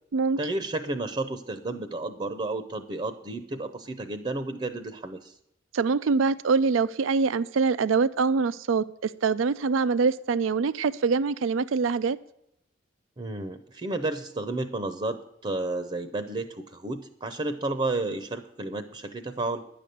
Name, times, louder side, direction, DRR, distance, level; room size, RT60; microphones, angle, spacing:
voice 1, 0.4-5.3 13.2-19.6, right 2 dB, 30° right, 10 dB, 0.7 m, -32 dB
voice 2, 5.7-12.2, right 4 dB, 90° right, 16 dB, 0.4 m, -24 dB
10.5 x 6.8 x 9.2 m, 0.79 s
head